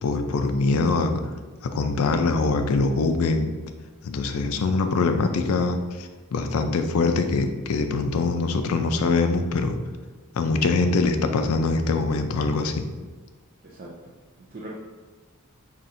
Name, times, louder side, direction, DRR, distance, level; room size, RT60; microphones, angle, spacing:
voice 1, 0.0-1.2 1.6-3.5 4.0-9.8 10.3-12.8, left 3 dB, 90° left, 7 dB, 0.4 m, -23 dB
voice 2, 13.6-14.7, right 1 dB, 40° right, -4 dB, 0.5 m, -41 dB
5.6 x 2.5 x 2.6 m, 1.4 s
head